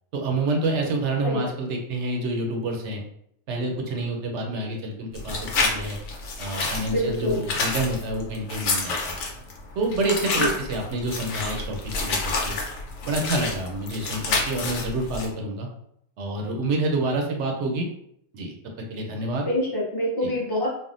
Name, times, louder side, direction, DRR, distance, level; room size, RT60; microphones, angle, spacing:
voice 1, 0.1-3.0 3.5-6.0 6.4-9.2 9.8-12.5 13.0-15.7 16.2-17.9 18.3-19.5 20.2-20.3, right 2 dB, 70° right, 2 dB, 0.8 m, -28 dB
sound 1, 5.1-15.3, left 3 dB, 85° left, 1.1 m, -29 dB
voice 2, 6.9-7.5 10.3-10.5 19.5-20.7, left 1 dB, 20° left, -5 dB, 0.8 m, -26 dB
3.4 x 2.2 x 2.4 m, 0.72 s
omnidirectional pair, 1.3 m